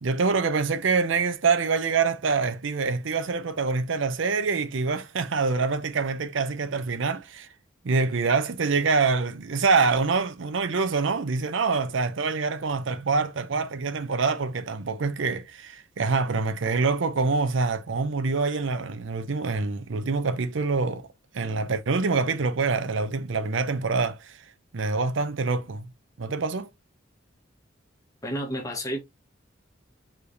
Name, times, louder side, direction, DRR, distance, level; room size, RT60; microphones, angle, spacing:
voice 1, 0.0-7.5 7.8-21.1 21.3-24.4 24.7-25.9 26.2-26.7, right 4 dB, 70° right, 0.6 m, -25 dB
voice 2, 28.2-29.0, equal, 15° left, 1.4 m, -30 dB
4.9 x 3.3 x 2.7 m
head